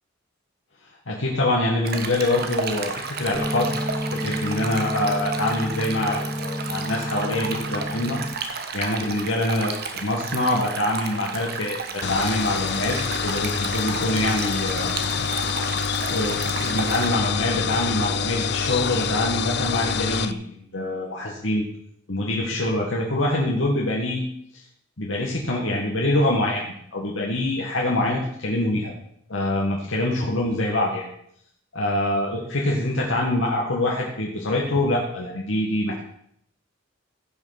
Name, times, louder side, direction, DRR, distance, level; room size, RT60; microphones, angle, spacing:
voice 1, 1.1-3.7 4.1-14.9 16.1-21.6 22.1-24.2 25.0-28.9 29.3-31.0 31.7-36.0, left 1 dB, 80° left, -2 dB, 1.9 m, -25 dB
Stream, 1.8-17.1, right 5 dB, 50° right, 1.3 m, -33 dB
sound 1, 3.3-8.3, left 1 dB, 10° left, 0.8 m, -30 dB
sound 2, 12.0-20.3, left 6 dB, 55° left, 0.5 m, -26 dB
15.5 x 6.1 x 5.9 m, 0.70 s
head